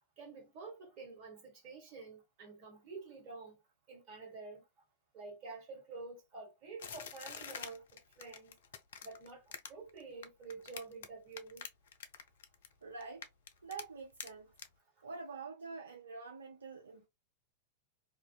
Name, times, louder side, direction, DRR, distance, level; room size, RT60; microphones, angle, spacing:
voice 1, 0.2-3.6 3.9-4.6 5.1-7.8 8.2-8.6 9.0-11.7, right 4 dB, 45° right, 1.2 m, -49 dB
sound 1, 6.8-11.1 11.3-12.7 13.0-13.8 14.2-14.3 14.6-14.7, left 7 dB, 60° left, 0.4 m, -46 dB
voice 2, 12.8-13.3 13.6-14.5 15.0-17.1, right 4 dB, 70° right, 0.4 m, -46 dB
2.5 x 2.2 x 2.2 m
figure-of-eight pair, 90°, 0 cm